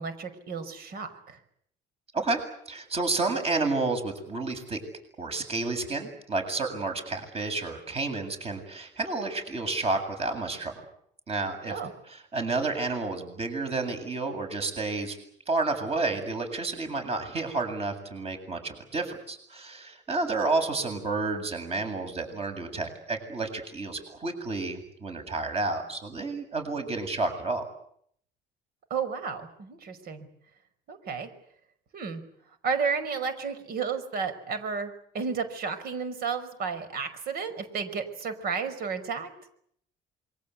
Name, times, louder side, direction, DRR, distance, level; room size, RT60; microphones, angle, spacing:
voice 1, 0.0-1.4 11.7-11.9 28.9-30.3 30.9-31.3 31.9-32.2 32.6-39.3, right 5 dB, 65° right, 10 dB, 5.4 m, -32 dB
voice 2, 2.7-4.8 5.2-10.7 11.3-11.8 12.1-15.2 15.5-27.6, right 3 dB, 35° right, 6 dB, 7.8 m, -30 dB
27.5 x 23.5 x 8.5 m, 0.68 s
cardioid pair, 110°, 17 cm